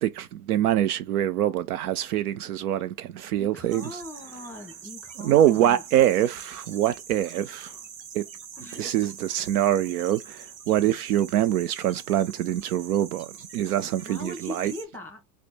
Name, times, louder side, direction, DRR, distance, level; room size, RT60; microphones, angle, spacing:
voice 1, 0.0-4.0 5.2-7.8 8.1-8.3 8.7-13.3 13.5-14.7, right 12 dB, 65° right, 0.5 m, -24 dB
voice 2, 3.4-5.8 8.6-8.9 14.0-15.2, left 1 dB, 5° left, 1.4 m, -40 dB
sound 1, 3.7-14.8, right 7 dB, 85° right, 0.8 m, -44 dB
4.2 x 2.2 x 4.4 m
figure-of-eight pair, 85°, 50 cm